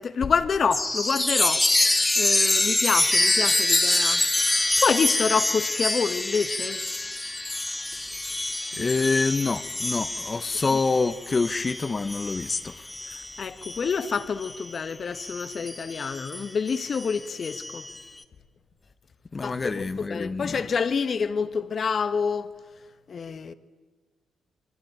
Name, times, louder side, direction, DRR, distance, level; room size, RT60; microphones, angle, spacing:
voice 1, 0.0-1.7 2.2-6.8 13.1-17.9 19.4-22.5 23.1-23.5, left 5 dB, 55° left, 1.5 m, -27 dB
Chime, 0.7-14.7 15.1-18.0, left 2 dB, 15° left, 1.9 m, -26 dB
voice 2, 7.9-12.9 19.3-20.6, left 4 dB, 35° left, 1.1 m, -27 dB
27.5 x 23.0 x 9.0 m
supercardioid pair, 60°, 0 cm